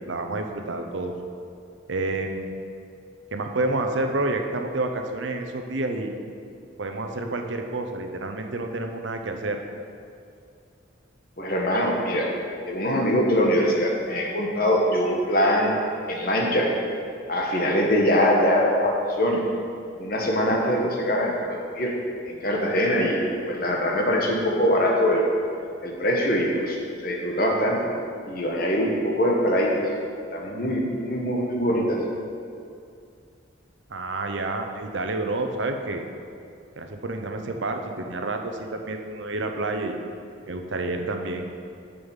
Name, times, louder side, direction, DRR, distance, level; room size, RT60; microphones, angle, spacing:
voice 1, 0.1-1.1 1.9-2.5 3.3-6.1 6.8-9.6 33.9-36.0 36.8-40.0 40.5-41.5, right 2 dB, 75° right, 4 dB, 0.7 m, -29 dB
voice 2, 11.4-12.3 12.7-15.8 16.1-16.7 17.3-19.4 20.0-21.9 22.2-23.2 23.5-25.2 25.8-26.8 27.0-27.8 28.3-29.8 30.3-32.0, equal, 50° left, -1 dB, 1.3 m, -23 dB
7.0 x 5.4 x 7.2 m, 2.4 s
head